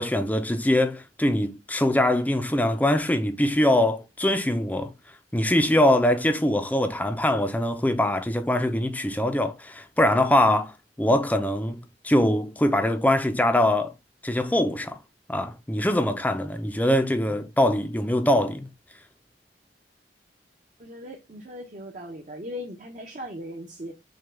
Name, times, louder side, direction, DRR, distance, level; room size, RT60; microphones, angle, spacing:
voice 1, 0.0-4.9 5.3-13.9 14.2-15.0 15.3-18.7, left 1 dB, 10° left, 0.5 m, -23 dB
voice 2, 20.8-23.9, equal, 45° right, 0.8 m, -38 dB
6.2 x 2.3 x 3.3 m
head